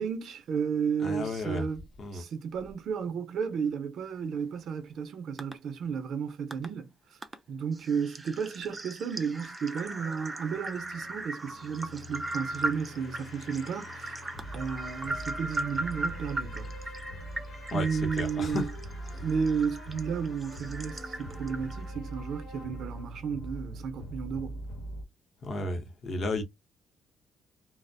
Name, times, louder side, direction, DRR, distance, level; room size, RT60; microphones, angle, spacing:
voice 1, 0.0-1.8 2.1-6.9 7.5-14.2 14.5-16.9 17.7-18.6 19.2-24.6, right 6 dB, 65° right, 0.6 m, -33 dB
voice 2, 1.0-1.7 2.0-2.2 17.7-18.7 19.0-19.4 25.4-26.4, left 2 dB, 45° left, 0.7 m, -33 dB
sound 1, 5.4-5.5 6.5-6.7 7.2-7.4 7.7-21.9, right 2 dB, 20° right, 0.3 m, -38 dB
sound 2, 10.5-25.0, equal, 85° left, 0.9 m, -42 dB
2.4 x 2.0 x 2.5 m
cardioid pair, 120°, 0 cm